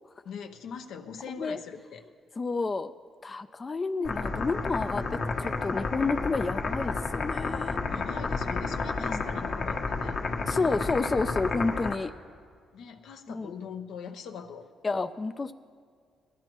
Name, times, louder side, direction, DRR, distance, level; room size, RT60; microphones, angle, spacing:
voice 1, 0.2-2.0 7.9-10.2 12.7-14.7, left 6 dB, 80° left, 6 dB, 0.8 m, -41 dB
voice 2, 2.4-2.9 3.2-7.8 9.0-9.2 10.5-12.1 13.3-13.5 14.8-15.5, left 3 dB, 30° left, 10 dB, 0.4 m, -30 dB
sound 1, 4.0-11.9, left 4 dB, 55° left, 1.2 m, -31 dB
19.5 x 13.0 x 3.0 m, 2.1 s
cardioid pair, 90°, 0 cm